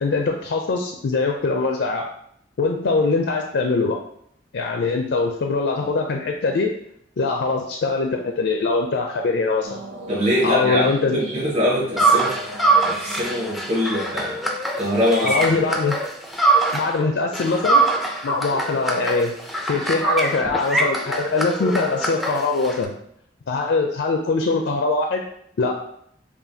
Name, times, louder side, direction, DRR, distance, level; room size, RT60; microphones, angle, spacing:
voice 1, 0.0-2.0 2.6-4.0 4.5-6.7 7.2-9.8 10.4-11.2 15.2-16.0 16.7-17.8 18.2-19.3 19.7-22.9 23.5-25.2 25.6-25.8, left 3 dB, 70° left, 1 dB, 0.4 m, -22 dB
sound 1, 9.6-14.7, right 1 dB, 80° right, 0.7 m, -37 dB
voice 2, 10.1-12.3 12.8-14.4 14.8-15.6, equal, 35° right, -8 dB, 1.3 m, -23 dB
sound 2, 12.0-17.0 17.3-22.9, right 3 dB, ahead, 0.4 m, -23 dB
5.5 x 2.3 x 2.7 m, 0.70 s
head